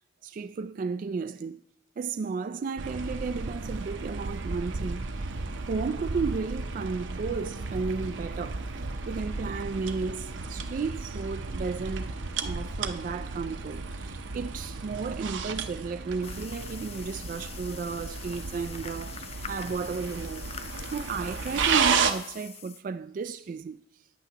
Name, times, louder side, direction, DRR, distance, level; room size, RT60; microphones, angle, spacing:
voice 1, 0.2-1.6 2.0-5.2 5.5-8.7 9.1-20.6 20.9-23.8, right 4 dB, 45° right, 0.3 m, -33 dB
sound 1, 2.8-22.1, right 4 dB, 75° right, 0.7 m, -33 dB
sound 2, 16.2-22.8, left 8 dB, 30° left, 0.4 m, -44 dB
14.5 x 10.0 x 2.9 m
head